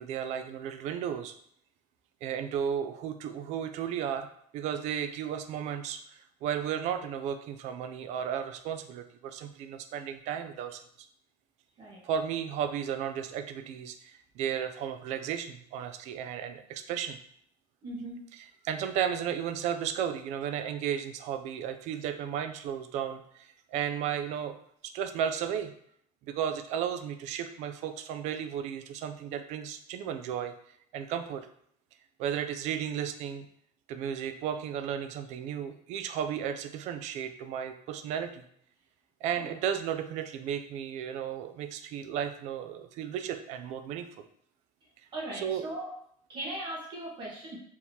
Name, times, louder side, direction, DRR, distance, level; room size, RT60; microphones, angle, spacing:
voice 1, 0.0-1.3 2.2-4.3 4.5-10.8 12.0-17.2 18.4-24.6 24.8-25.7 26.3-30.5 30.9-31.5 32.2-33.5 33.9-38.4 39.2-44.2 45.4-45.7, right 8 dB, 55° right, 9 dB, 0.4 m, -34 dB
voice 2, 17.8-18.3 39.4-39.5 45.1-45.9 46.3-47.6, right 1 dB, 35° right, -4 dB, 1.4 m, -38 dB
4.5 x 3.6 x 2.8 m, 0.67 s
cardioid pair, 175°, 14 cm